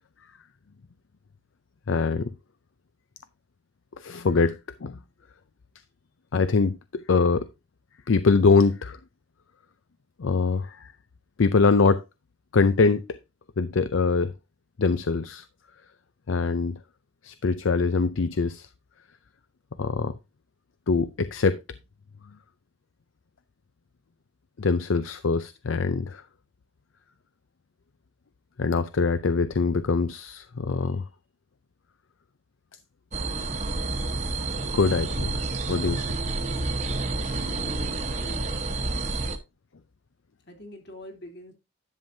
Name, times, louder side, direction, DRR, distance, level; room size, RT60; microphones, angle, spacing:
voice 1, 1.9-2.3 4.0-5.0 6.3-7.5 8.1-9.0 10.2-10.9 11.4-12.0 12.5-13.0 13.6-14.3 14.8-15.4 16.3-16.8 17.2-18.7 19.8-20.1 20.9-21.6 24.6-26.2 28.6-31.1 34.7-35.3 35.7-36.0 37.3-37.6, left 4 dB, 75° left, 0.5 m, -23 dB
sound 1, 33.1-39.4, right 2 dB, 35° right, 1.1 m, -29 dB
voice 2, 37.5-38.5 40.5-41.5, left 1 dB, 55° left, 2.9 m, -45 dB
11.0 x 7.2 x 2.7 m
head